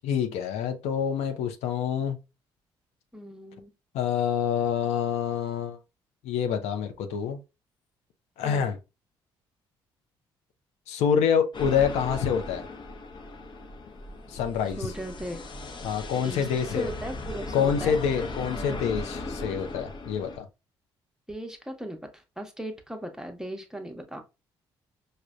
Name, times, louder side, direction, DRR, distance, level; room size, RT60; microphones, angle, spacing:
voice 1, 0.0-2.2 3.9-5.8 6.2-7.4 8.4-8.8 10.9-12.6 14.3-14.9 15.8-16.9 17.5-20.5, left 7 dB, 70° left, 0.5 m, -27 dB
voice 2, 3.1-3.7 8.4-8.7 14.8-15.4 16.2-18.0 18.7-18.9 21.3-24.2, right 1 dB, 5° right, 0.8 m, -38 dB
sound 1, 11.5-20.4, left 2 dB, 40° left, 0.8 m, -37 dB
4.9 x 2.1 x 2.3 m
hypercardioid pair, 50°, 12 cm